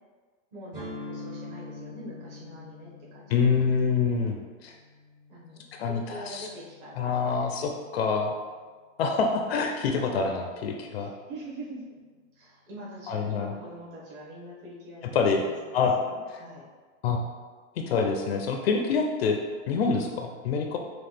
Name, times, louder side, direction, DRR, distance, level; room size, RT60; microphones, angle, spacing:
voice 1, 0.5-3.5 5.3-7.4 11.0-12.0 12.3-16.7, right 1 dB, 40° right, -5 dB, 1.4 m, -44 dB
sound 1, 0.7-8.5, left 2 dB, 20° right, 0.6 m, -45 dB
voice 2, 3.3-4.4 4.6-4.7 5.8-6.5 7.0-8.3 9.0-11.1 13.1-13.5 15.1-15.4 15.7-15.9 16.3-16.4 17.0-17.2 17.8-19.4 19.7-20.8, left 5 dB, 50° left, 3 dB, 0.5 m, -26 dB
5.8 x 2.4 x 3.3 m, 1.4 s
supercardioid pair, 165°, 41 cm